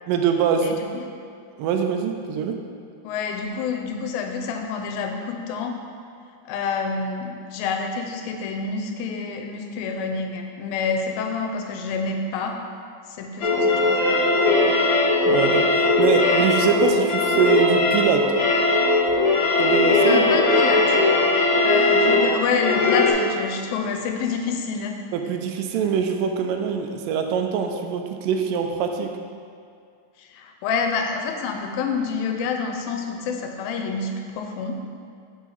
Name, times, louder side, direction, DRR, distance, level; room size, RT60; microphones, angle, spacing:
voice 1, 0.1-0.7 1.6-2.6 15.3-18.3 19.6-20.2 25.1-29.1, right 7 dB, 80° right, 5 dB, 2.1 m, -23 dB
voice 2, 0.6-1.0 3.0-5.8 6.5-12.6 13.1-14.8 20.1-21.0 21.6-25.0 30.2-34.7, left 5 dB, 85° left, 3 dB, 2.4 m, -28 dB
sound 1, 13.4-23.1, left 2 dB, 65° left, 2.7 m, -19 dB
7.3 x 5.6 x 3.9 m, 2.3 s
omnidirectional pair, 4.1 m